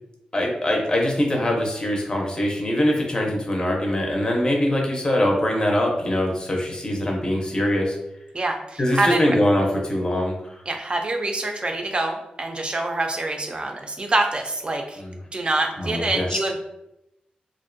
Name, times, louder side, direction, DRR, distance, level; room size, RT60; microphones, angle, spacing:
voice 1, 0.3-8.0 8.8-10.6 15.0-15.2 15.8-16.4, left 1 dB, 30° left, 0 dB, 0.6 m, -23 dB
voice 2, 8.3-9.2 10.7-15.0 15.3-16.6, right 2 dB, 35° right, 3 dB, 0.4 m, -25 dB
2.4 x 2.1 x 2.5 m, 0.87 s
cardioid pair, 75°, 3 cm